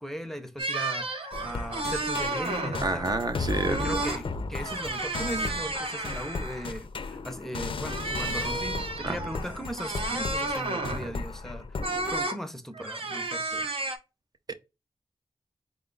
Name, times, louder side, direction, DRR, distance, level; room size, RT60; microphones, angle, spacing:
voice 1, 0.0-3.1 3.7-13.7, equal, 5° left, 0.5 m, -38 dB
sound 1, 0.6-3.0 3.5-4.2 4.5-6.8 7.8-11.1 11.8-12.4 12.7-14.0, right 2 dB, 80° right, 0.7 m, -32 dB
sound 2, 1.3-12.3, left 3 dB, 65° left, 0.4 m, -36 dB
voice 2, 2.8-3.9 9.0-9.2 14.5-14.6, right 3 dB, 45° right, 0.5 m, -29 dB
3.9 x 2.3 x 3.7 m
wide cardioid pair, 90°, 9 cm